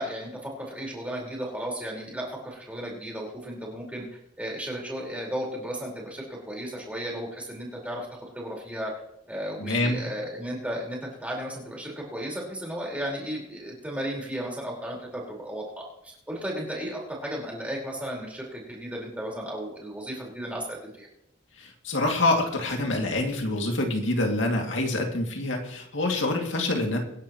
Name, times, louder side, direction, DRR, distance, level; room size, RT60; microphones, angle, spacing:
voice 1, 0.0-4.0 4.4-8.9 9.3-21.1, equal, 5° right, -3 dB, 4.6 m, -34 dB
voice 2, 9.6-10.0 21.6-27.0, left 2 dB, 75° left, 1 dB, 2.4 m, -26 dB
24.5 x 11.0 x 3.1 m, 0.76 s
head